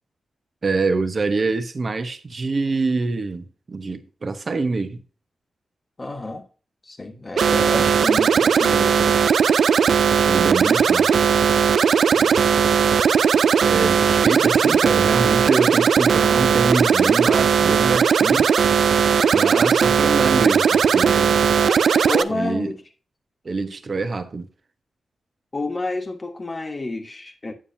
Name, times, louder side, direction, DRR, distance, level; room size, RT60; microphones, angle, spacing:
voice 1, 0.6-5.0 7.7-8.0 10.2-11.1 13.6-18.5 19.3-21.4 22.3-22.7 23.4-24.5, right 3 dB, 40° right, 0.9 m, -25 dB
voice 2, 6.0-6.5 6.8-9.4 12.1-12.4 21.5-22.8 25.5-27.5, left 2 dB, 30° left, 1.3 m, -30 dB
sound 1, 7.4-22.2, right 7 dB, 70° right, 0.4 m, -17 dB
8.7 x 7.1 x 2.7 m
wide cardioid pair, 110°, 0 cm